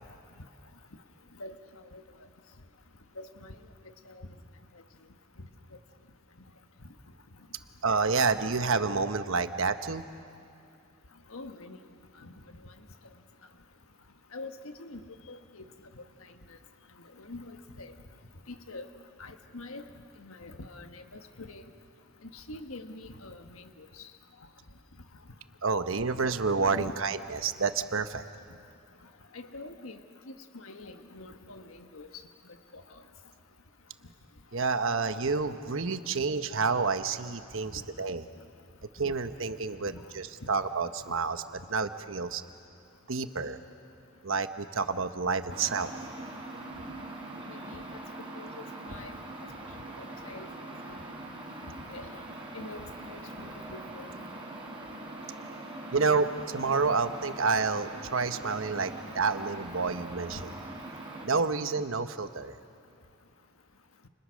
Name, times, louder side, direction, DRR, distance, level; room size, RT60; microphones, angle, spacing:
voice 1, 3.2-3.6 4.1-4.3 11.3-11.8 12.2-12.3 14.3-15.6 17.2-17.9 18.5-18.9 19.2-19.8 20.2-21.6 22.3-23.9 26.7-26.9 29.3-30.0 30.3-32.1 32.7-32.8 39.9-40.0 47.4-47.8 48.3-49.1 50.0-50.5 51.7-52.2 52.5-54.1, left 2 dB, 85° left, 7 dB, 1.5 m, -44 dB
voice 2, 7.8-10.0 25.6-28.2 34.5-38.2 38.9-41.4 41.7-42.4 43.1-43.6 44.2-45.9 55.9-60.4 61.2-62.5, right 4 dB, 65° right, 9 dB, 1.1 m, -29 dB
sound 1, 45.5-61.3, right 1 dB, 25° right, 4.4 m, -42 dB
30.0 x 30.0 x 6.5 m, 2.5 s
head